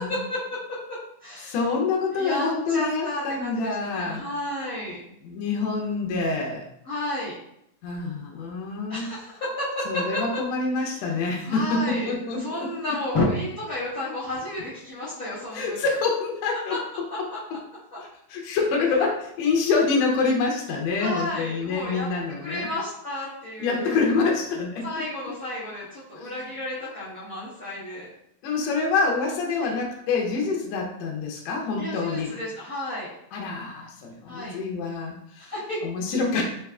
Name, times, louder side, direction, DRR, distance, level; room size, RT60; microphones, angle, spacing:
voice 1, 0.0-1.6 2.1-5.0 6.8-7.4 8.9-10.2 11.4-15.8 16.7-16.8 17.3-17.4 17.9-18.0 21.0-22.1 22.4-23.9 24.8-28.1 29.6-29.7 31.8-33.1 34.3-34.6 35.4-35.8, left 1 dB, 60° left, -9 dB, 0.9 m, -31 dB
voice 2, 1.4-4.2 5.2-6.7 7.8-9.1 9.9-12.7 15.5-16.8 18.3-22.7 23.6-24.9 26.2-26.5 28.4-32.3 33.3-35.5 35.8-36.4, left 4 dB, 75° left, 0 dB, 1.7 m, -26 dB
4.7 x 3.5 x 2.3 m, 0.76 s
omnidirectional pair, 3.3 m